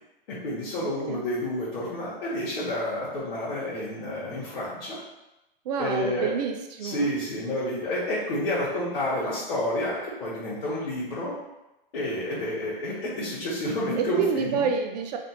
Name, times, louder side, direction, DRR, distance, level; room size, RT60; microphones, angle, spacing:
voice 1, 0.3-5.0 5.8-6.3 6.8-11.3 11.9-14.6, left 1 dB, 80° left, -8 dB, 1.2 m, -29 dB
voice 2, 0.8-1.2 5.6-7.1 14.0-15.2, right 6 dB, 45° right, 4 dB, 0.5 m, -28 dB
3.3 x 2.5 x 2.8 m, 0.96 s
hypercardioid pair, 145°, 29 cm